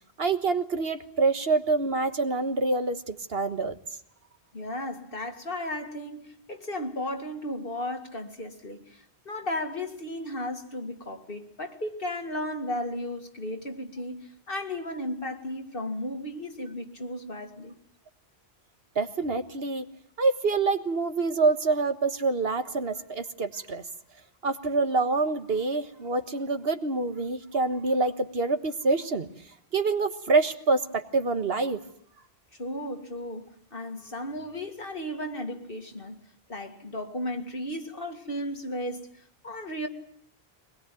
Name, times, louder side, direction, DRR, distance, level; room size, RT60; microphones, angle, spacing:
voice 1, 0.2-3.8 18.9-19.8 20.2-23.8 24.4-29.3 29.7-31.8, right 3 dB, 65° right, 1.7 m, -26 dB
voice 2, 4.5-17.7 32.6-36.2 36.5-39.9, left 1 dB, 60° left, 2.3 m, -35 dB
23.5 x 20.5 x 9.1 m
omnidirectional pair, 1.1 m